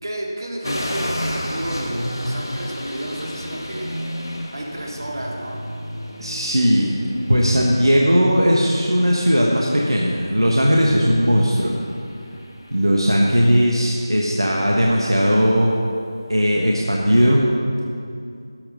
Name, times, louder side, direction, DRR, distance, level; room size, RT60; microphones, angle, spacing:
voice 1, 0.0-3.9 4.5-5.6, right 1 dB, 55° right, -1 dB, 2.2 m, -31 dB
sound 1, 0.6-17.2, equal, 60° left, 1.7 m, -33 dB
voice 2, 6.2-6.9 7.3-11.7 12.7-15.7 16.3-17.4, equal, 75° right, -3 dB, 1.4 m, -17 dB
13.5 x 6.1 x 5.7 m, 2.3 s
figure-of-eight pair, 165°, 2 cm